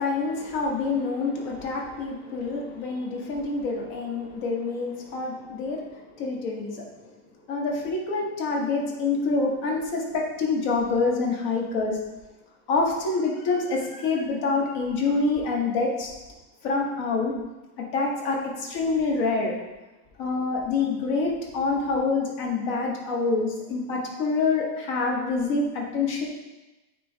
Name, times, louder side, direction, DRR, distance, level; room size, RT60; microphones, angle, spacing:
voice 1, 0.0-6.8 7.5-12.0 12.7-16.1 16.6-17.3 17.8-19.6 20.2-26.3, left 3 dB, 50° left, -1 dB, 1.2 m, -26 dB
9.1 x 4.8 x 2.6 m, 1.1 s
omnidirectional pair, 2.2 m